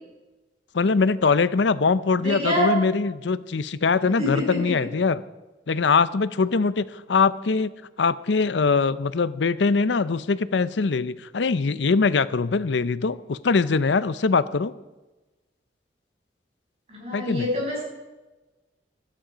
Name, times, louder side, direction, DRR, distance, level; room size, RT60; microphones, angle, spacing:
voice 1, 0.7-5.2 5.7-7.7 8.0-14.7 17.1-17.5, left 4 dB, 90° left, 16 dB, 0.6 m, -22 dB
voice 2, 2.2-2.8 4.2-4.7 16.9-17.8, left 1 dB, 35° right, -3 dB, 6.7 m, -26 dB
16.5 x 13.0 x 5.1 m, 1.1 s
head